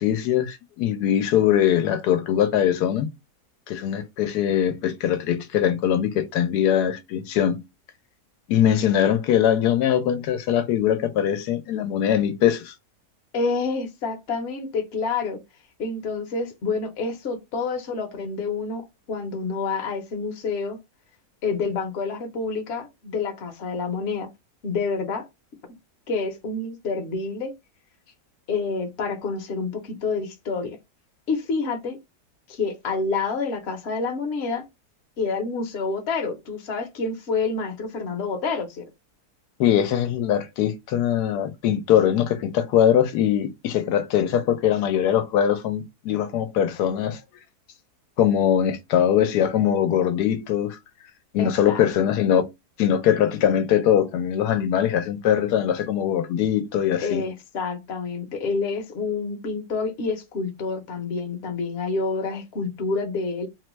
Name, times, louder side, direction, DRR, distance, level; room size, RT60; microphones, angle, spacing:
voice 1, 0.0-3.1 3.7-7.6 8.5-12.7 39.6-47.2 48.2-50.8 51.3-52.4 52.8-57.3, left 10 dB, 90° left, 1.1 m, -22 dB
voice 2, 13.3-15.4 15.8-20.8 21.4-24.3 24.6-25.3 26.1-27.5 28.5-30.8 31.3-32.0 32.5-34.6 35.2-38.9 51.4-51.9 57.0-63.5, left 4 dB, 55° left, 0.8 m, -28 dB
3.0 x 2.1 x 3.0 m
omnidirectional pair, 1.7 m